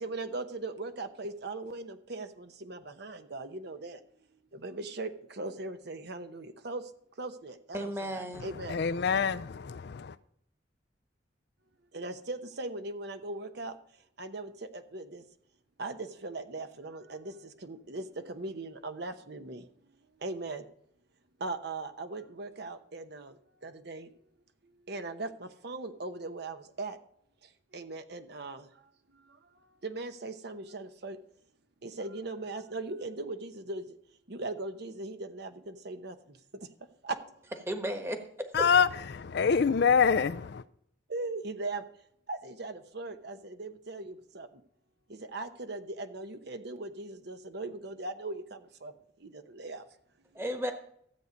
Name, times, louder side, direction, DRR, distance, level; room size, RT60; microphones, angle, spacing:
voice 1, 0.0-4.0 4.6-6.8 7.2-8.8 11.9-13.7 14.2-15.2 15.8-17.3 17.6-19.6 20.2-20.6 21.4-23.3 23.6-24.1 24.9-27.0 27.7-28.6 29.8-31.2 31.8-33.8 34.3-36.1 37.0-37.2 41.1-41.8 42.3-44.5 45.1-48.9 49.3-49.8, right 2 dB, 60° right, 0.9 m, -39 dB
voice 2, 7.7-8.5 37.7-38.7 50.3-50.7, equal, 15° right, 1.3 m, -34 dB
voice 3, 8.4-10.2 38.5-40.6, left 6 dB, 60° left, 0.4 m, -26 dB
13.5 x 8.2 x 5.2 m
head